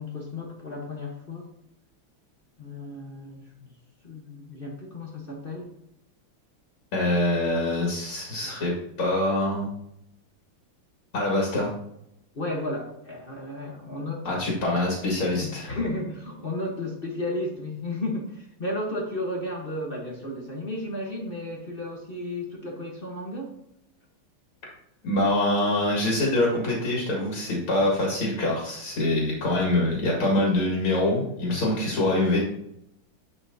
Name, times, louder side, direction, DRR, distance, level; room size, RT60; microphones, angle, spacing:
voice 1, 0.0-1.5 2.6-3.7 4.0-5.7 12.3-14.5 15.4-23.5, left 1 dB, 35° left, 0 dB, 1.0 m, -33 dB
voice 2, 6.9-8.7 9.0-9.7 11.1-11.7 14.2-15.7 25.0-32.4, left 1 dB, 80° left, -3 dB, 2.8 m, -24 dB
10.5 x 5.7 x 2.7 m, 0.77 s
omnidirectional pair, 2.3 m